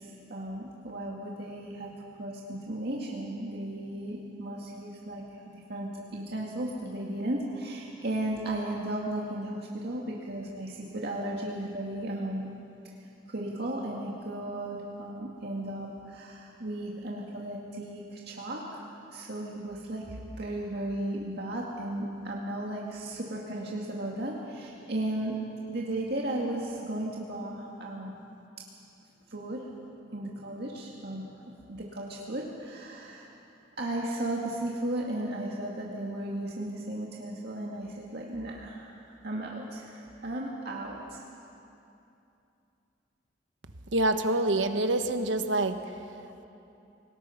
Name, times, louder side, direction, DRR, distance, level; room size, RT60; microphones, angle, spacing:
voice 1, 0.0-1.9 2.2-5.4 5.7-12.5 13.3-25.4 25.7-28.1 29.3-29.7 30.1-31.2 31.7-33.3 33.8-41.2, right 1 dB, 60° right, -2 dB, 2.0 m, -35 dB
voice 2, 43.9-45.8, right 2 dB, 80° right, 8 dB, 1.2 m, -26 dB
25.5 x 19.5 x 5.8 m, 2.8 s
head